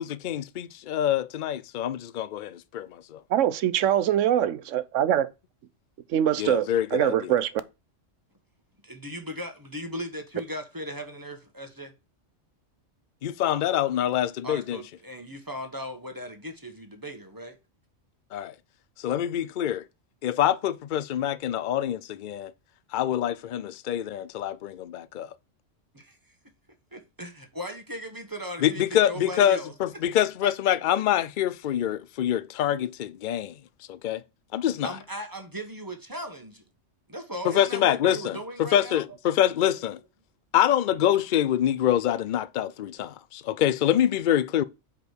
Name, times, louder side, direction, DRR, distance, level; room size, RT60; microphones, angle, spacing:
voice 1, 0.0-3.2 6.4-7.3 13.2-14.8 18.3-18.5 19.0-19.8 20.2-22.5 22.9-25.3 28.6-33.5 33.9-34.2 34.5-34.9 37.4-40.0 40.5-44.6, left 11 dB, 55° left, 0.6 m, -25 dB
voice 2, 3.3-5.3 6.1-7.5, right 10 dB, 85° right, 1.0 m, -23 dB
voice 3, 8.8-11.9 14.4-17.6 25.9-26.2 26.9-29.7 30.4-30.8 34.8-36.6 37.1-39.2, equal, 20° right, 1.2 m, -38 dB
5.1 x 4.8 x 6.3 m
omnidirectional pair, 1.3 m